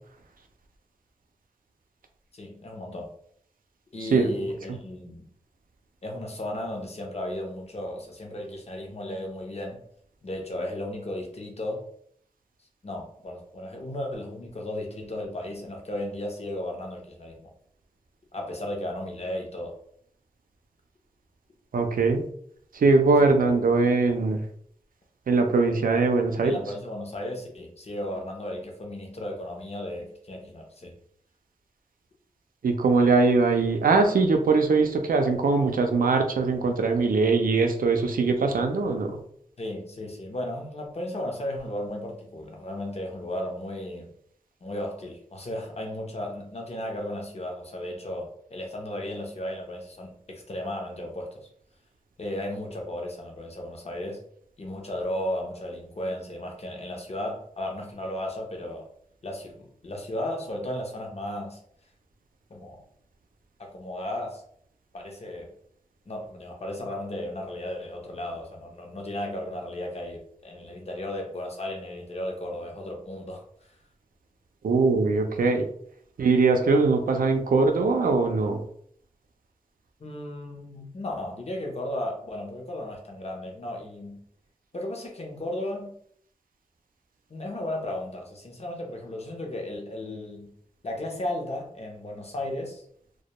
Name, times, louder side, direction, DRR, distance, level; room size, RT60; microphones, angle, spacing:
voice 1, 2.3-3.1 3.9-5.3 6.0-9.8 10.2-11.8 12.8-17.5 18.3-19.7 23.2-23.4 26.4-30.9 39.6-44.1 44.6-51.5 52.2-54.2 54.6-58.8 59.2-61.6 62.5-62.8 63.6-64.4 64.9-65.5 66.1-73.4 80.0-84.2 84.7-85.9 87.3-90.5 90.8-92.8, left 1 dB, 50° left, 1 dB, 0.6 m, -35 dB
voice 2, 4.0-4.3 21.7-22.3 22.7-24.4 25.3-26.6 32.6-39.2 74.6-75.7 76.2-78.6, right 3 dB, 85° right, 4 dB, 0.4 m, -21 dB
2.1 x 2.1 x 2.8 m, 0.65 s
wide cardioid pair, 85°, 14 cm